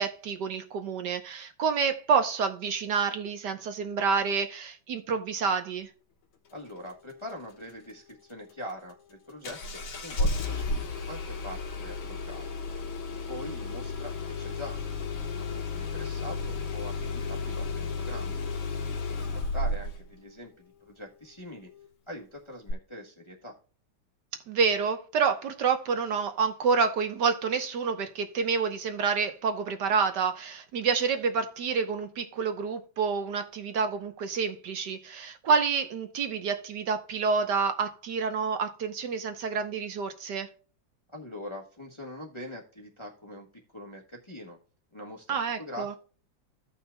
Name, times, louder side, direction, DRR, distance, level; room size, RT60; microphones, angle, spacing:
voice 1, 0.0-5.9 24.5-40.5 45.3-45.9, right 5 dB, 65° right, 1.4 m, -28 dB
voice 2, 6.5-12.6 13.3-15.0 15.3-18.4 19.1-21.7 22.1-23.6 41.1-43.5 43.7-44.6 44.9-46.0, left 1 dB, 20° left, 1.1 m, -43 dB
Engine starting, 9.4-20.0 22.7-22.8, left 3 dB, 80° left, 2.1 m, -33 dB
15.5 x 5.6 x 2.2 m
omnidirectional pair, 2.1 m